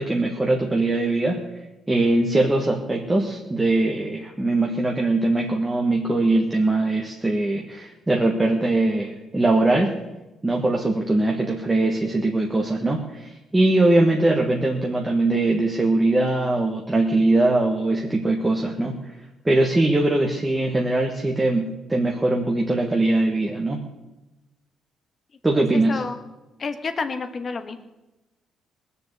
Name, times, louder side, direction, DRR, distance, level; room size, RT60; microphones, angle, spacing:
voice 1, 0.0-1.4 1.9-9.9 10.4-19.0 19.4-23.8 25.4-26.0, right 2 dB, 10° right, 0 dB, 1.4 m, -21 dB
voice 2, 25.5-26.2 26.6-27.8, left 4 dB, 35° left, 8 dB, 1.4 m, -30 dB
19.5 x 7.0 x 8.2 m, 1.0 s
cardioid pair, 130°, 0 cm